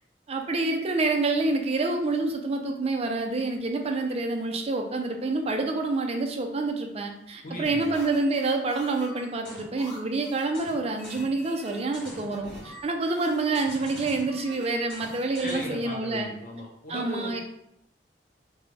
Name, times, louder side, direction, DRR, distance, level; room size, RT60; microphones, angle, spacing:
voice 1, 0.3-16.3 16.9-17.4, right 3 dB, 35° right, 3 dB, 0.5 m, -27 dB
voice 2, 7.4-7.9 15.4-17.4, left 1 dB, 50° left, -2 dB, 0.9 m, -37 dB
sound 1, 7.6-15.8, equal, 5° left, 1.3 m, -45 dB
4.2 x 2.2 x 3.3 m, 0.77 s
head